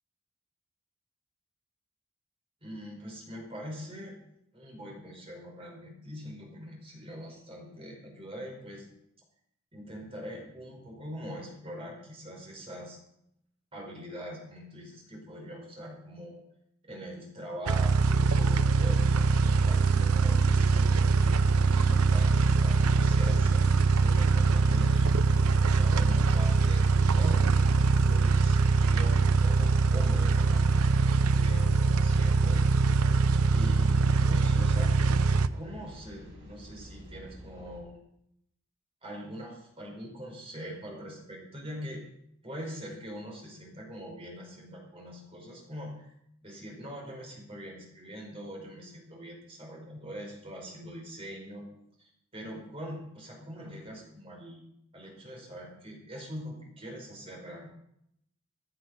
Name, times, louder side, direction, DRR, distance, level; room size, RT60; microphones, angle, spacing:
voice 1, 2.6-4.1 4.5-8.9 9.7-13.0 13.7-16.4 16.8-21.4 21.7-23.7 24.0-25.4 25.7-32.6 33.5-35.0 35.5-38.0 39.0-42.0 42.4-46.1 46.4-51.7 52.0-54.7 54.9-57.7, equal, 25° right, -1 dB, 4.9 m, -43 dB
sound 1, 17.7-35.5, right 4 dB, 85° right, 0.6 m, -23 dB
sound 2, 19.3-37.8, equal, 55° right, 7.3 m, -48 dB
15.5 x 11.0 x 5.3 m, 0.75 s
head